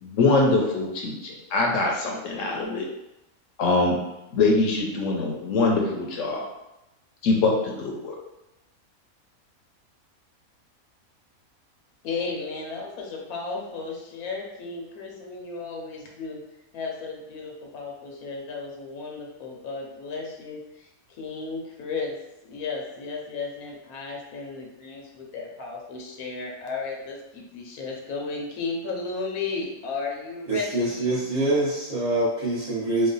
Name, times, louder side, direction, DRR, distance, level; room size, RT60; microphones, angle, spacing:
voice 1, 0.0-2.9 3.6-4.0 4.3-6.5 7.2-8.2, left 3 dB, 70° left, 0 dB, 0.9 m, -23 dB
voice 2, 12.0-16.4 16.7-22.1 22.5-31.2, left 4 dB, 90° left, 0 dB, 1.2 m, -34 dB
voice 3, 30.5-33.1, right 2 dB, 35° right, -11 dB, 0.8 m, -25 dB
3.1 x 2.1 x 3.8 m, 0.93 s
omnidirectional pair, 1.5 m